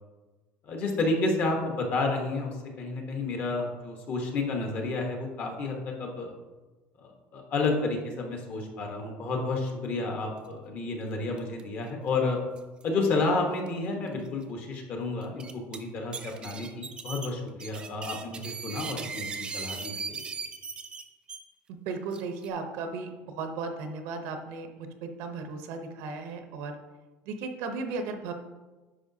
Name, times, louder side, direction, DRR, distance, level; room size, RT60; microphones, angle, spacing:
voice 1, 0.6-6.3 7.0-12.4 12.8-20.3, left 3 dB, 40° left, 2 dB, 1.2 m, -31 dB
sound 1, 11.4-11.6 11.9-12.0 12.6-12.8 13.7-13.8 14.3-14.4 15.2-15.8 16.1-21.4 22.1-22.5, right 5 dB, 20° right, 0.4 m, -38 dB
voice 2, 21.7-26.7 27.3-28.3, right 4 dB, 65° right, 6 dB, 0.8 m, -36 dB
9.9 x 5.5 x 2.8 m, 1.2 s
cardioid pair, 170°, 5 cm